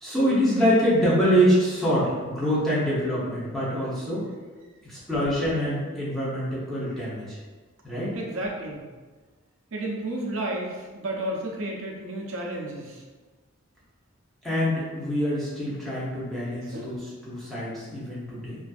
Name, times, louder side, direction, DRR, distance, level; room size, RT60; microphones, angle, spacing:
voice 1, 0.0-4.3 4.8-7.4 7.8-8.2 14.4-18.6, equal, ahead, -10 dB, 0.7 m, -25 dB
voice 2, 8.1-8.9 9.7-13.0 16.7-16.9, right 1 dB, 60° right, -2 dB, 0.5 m, -32 dB
2.4 x 2.4 x 2.4 m, 1.3 s
head